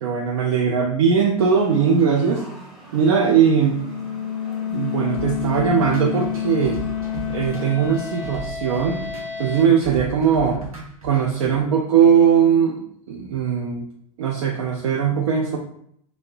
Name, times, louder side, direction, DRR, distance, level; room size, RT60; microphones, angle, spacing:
voice 1, 0.0-2.4 2.9-3.8 4.7-6.8 7.3-9.1 9.4-10.6 11.0-12.8 13.1-13.9 14.2-15.6, right 7 dB, 55° right, -1 dB, 0.4 m, -19 dB
sound 1, 1.5-8.4, right 2 dB, ahead, 0.7 m, -44 dB
sound 2, 3.4-9.7, left 9 dB, 55° left, 0.5 m, -29 dB
sound 3, 5.1-11.5, right 4 dB, 80° right, 0.7 m, -36 dB
2.6 x 2.0 x 2.4 m, 0.67 s
figure-of-eight pair, 90°, 18 cm